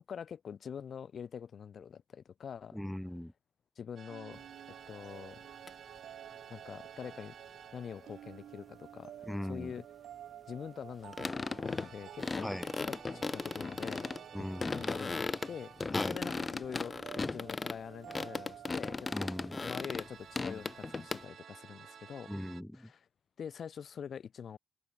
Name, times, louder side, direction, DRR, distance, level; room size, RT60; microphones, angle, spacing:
voice 1, 0.1-2.8 3.8-4.4 4.7-5.4 6.5-7.3 7.7-9.8 10.5-12.5 12.8-14.1 14.4-15.7 16.1-17.0 17.3-19.3 19.6-22.3 22.7-23.0 23.4-24.6, left 7 dB, 55° left, 0.9 m, -45 dB
voice 2, 2.7-3.3 9.2-9.7 12.4-12.7 14.3-15.0 15.9-16.2 19.1-19.6 22.3-22.9, equal, 5° left, 0.6 m, -39 dB
sound 1, 4.0-8.9 11.6-16.8 19.6-22.6, right 8 dB, 55° right, 2.0 m, -54 dB
sound 2, 4.1-19.7, right 11 dB, 70° right, 1.0 m, -52 dB
sound 3, 4.3-4.4 5.7-5.8 11.1-11.9 12.2-14.2 14.6-17.8 18.1-21.2, left 3 dB, 25° left, 0.9 m, -36 dB
open air
cardioid pair, 90°, 0 cm